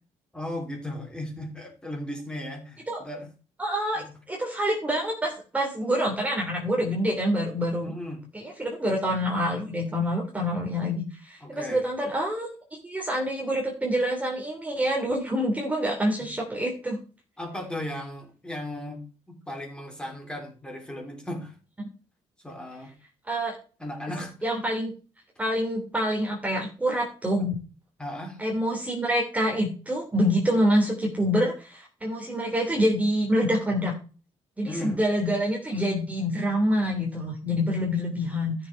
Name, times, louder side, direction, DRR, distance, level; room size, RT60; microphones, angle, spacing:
voice 1, 0.3-3.3 4.0-4.1 7.8-8.2 11.4-11.8 16.2-16.3 17.4-21.6 22.4-22.9 23.8-24.4 27.4-27.5 28.0-28.4 34.7-35.0, left 1 dB, 5° left, 2 dB, 3.9 m, -36 dB
voice 2, 3.6-7.9 8.3-12.5 12.8-17.0 23.3-23.5 24.4-24.9 25.4-27.6 28.4-33.9 34.6-38.6, equal, 10° right, -1 dB, 3.0 m, -26 dB
13.5 x 6.9 x 4.7 m, 0.35 s
cardioid pair, 155°, 12 cm